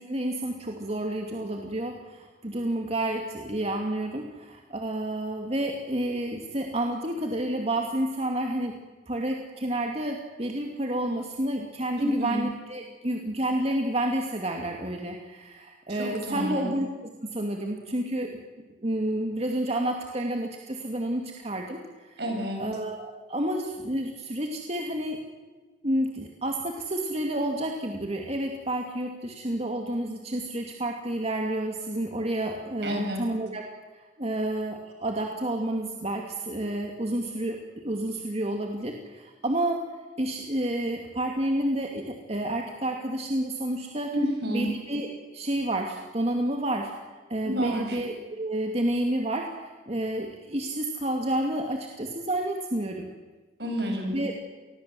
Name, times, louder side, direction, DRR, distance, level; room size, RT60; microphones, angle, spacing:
voice 1, 0.1-8.7 9.1-16.9 17.2-18.3 18.8-22.2 22.6-25.2 25.8-33.6 34.2-37.6 37.8-39.8 40.2-44.1 44.5-45.1 45.3-46.9 47.3-53.1 54.1-54.3, right 1 dB, 35° right, 2 dB, 2.4 m, -30 dB
voice 2, 12.0-12.4 15.9-16.7 22.2-22.6 32.8-33.3 44.1-44.7 47.4-48.0 53.6-54.2, equal, 65° right, 2 dB, 7.8 m, -29 dB
28.0 x 21.5 x 7.7 m, 1.3 s
head